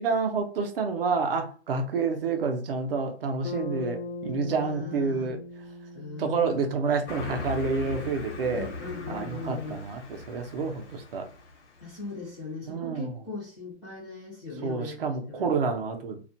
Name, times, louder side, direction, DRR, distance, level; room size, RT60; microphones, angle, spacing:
voice 1, 0.0-5.4 6.2-8.7 9.1-11.2 12.7-13.1 14.6-16.2, right 4 dB, 55° right, 5 dB, 0.6 m, -29 dB
Bass guitar, 3.4-7.8, left 3 dB, 65° left, 0.5 m, -40 dB
voice 2, 4.6-5.4 5.9-6.7 8.5-9.8 11.8-15.5, left 4 dB, 5° left, -10 dB, 0.4 m, -39 dB
Car passing by, 7.1-12.0, left 3 dB, 85° left, 0.8 m, -39 dB
2.4 x 2.1 x 2.6 m, 0.38 s
hypercardioid pair, 165°, 34 cm